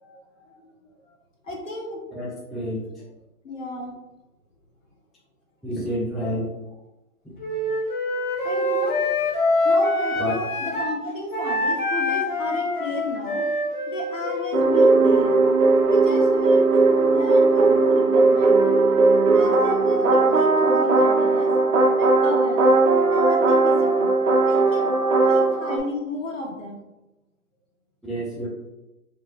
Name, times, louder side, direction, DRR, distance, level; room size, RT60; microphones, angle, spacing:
voice 1, 0.0-1.1 1.4-2.0 2.8-2.9 3.4-3.9 7.3-7.7 8.4-9.0 9.6-13.4 13.9-15.4 15.9-18.8 19.3-21.5 22.0-22.7 23.1-24.1 24.4-24.9 25.3-26.8, left 1 dB, 60° left, -1 dB, 1.2 m, -33 dB
voice 2, 2.1-2.8 5.6-6.5 10.2-10.4 28.0-28.5, equal, ahead, -6 dB, 0.3 m, -28 dB
Wind instrument woodwind instrument, 7.4-11.0 11.3-15.1, left 2 dB, 35° left, 0.7 m, -25 dB
sound 1, 14.5-25.8, right 3 dB, 65° right, 0.7 m, -18 dB
4.1 x 2.8 x 2.5 m, 1.0 s
hypercardioid pair, 175°, 44 cm